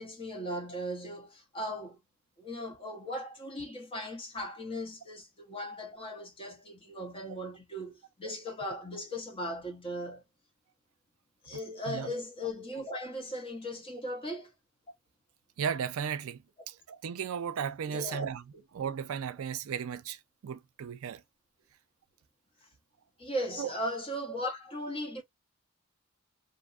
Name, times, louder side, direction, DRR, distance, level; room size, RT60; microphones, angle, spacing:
voice 1, 0.0-2.0 2.4-10.2 11.4-14.5 17.9-18.3 23.2-25.2, equal, 25° left, 0.9 m, -38 dB
voice 2, 15.6-16.4 16.7-18.4 18.7-20.2 20.4-21.2 23.6-23.7, right 7 dB, 70° right, 0.4 m, -35 dB
2.7 x 2.1 x 2.3 m
head